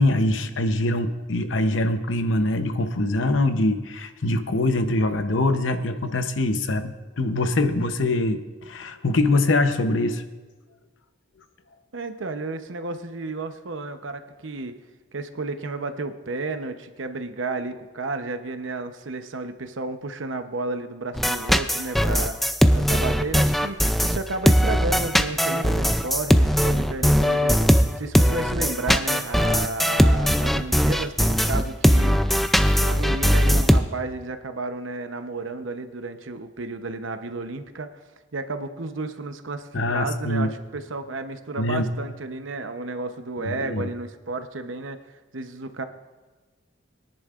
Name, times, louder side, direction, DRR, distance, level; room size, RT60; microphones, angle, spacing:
voice 1, 0.0-10.2 39.7-40.5 41.6-41.8 43.4-43.9, left 2 dB, 80° left, 9 dB, 0.8 m, -23 dB
voice 2, 11.9-14.7 15.1-22.4 22.7-32.2 32.6-37.9 38.3-45.8, right 3 dB, 85° right, 8 dB, 0.8 m, -32 dB
sound 1, 21.1-33.8, equal, ahead, 0.4 m, -20 dB
22.5 x 10.5 x 2.5 m, 1.3 s
head